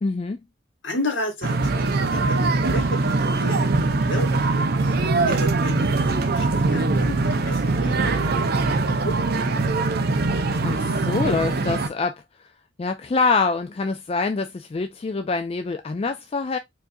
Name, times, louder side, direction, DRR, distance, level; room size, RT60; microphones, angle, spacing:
voice 1, 0.0-0.4 10.6-12.5 12.8-16.6, left 4 dB, 30° left, 0.3 m, -25 dB
voice 2, 0.8-3.7 4.1-4.3 5.2-8.1 8.4-8.5 8.9-9.9, left 1 dB, 70° left, 1.5 m, -33 dB
sound 1, 1.4-11.9, right 3 dB, 55° right, 0.5 m, -22 dB
4.6 x 2.6 x 2.6 m
head